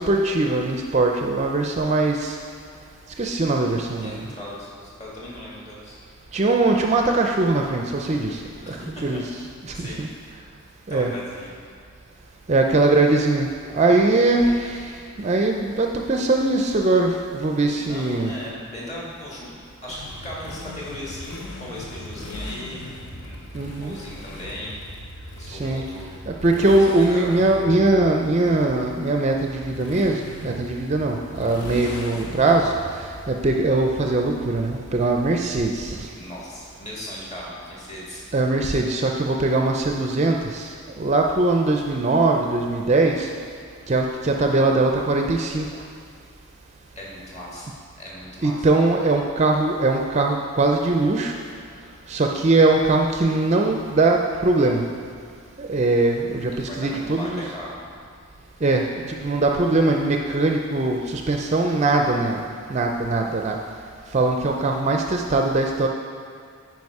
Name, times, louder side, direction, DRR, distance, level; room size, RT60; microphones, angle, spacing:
voice 1, 0.0-2.4 3.2-4.3 6.3-8.8 9.0-9.2 9.8-10.1 10.9-11.1 12.5-14.9 15.2-18.3 23.5-24.0 25.5-25.8 26.3-36.1 38.3-40.7 41.0-43.3 43.9-45.7 48.4-51.3 52.1-54.8 55.6-57.4 58.6-62.4 62.7-63.6 64.1-65.9, right 2 dB, 30° right, 2 dB, 0.4 m, -21 dB
voice 2, 3.5-6.0 8.6-9.2 9.7-10.4 10.9-11.5 17.7-24.7 25.4-26.1 26.6-27.3 36.1-38.2 47.0-47.7 48.0-48.9 56.6-57.8, left 1 dB, 30° left, -6 dB, 1.9 m, -38 dB
Motorcycle, 19.9-35.7, left 1 dB, 80° left, 0.9 m, -39 dB
9.6 x 4.7 x 4.8 m, 2.3 s
head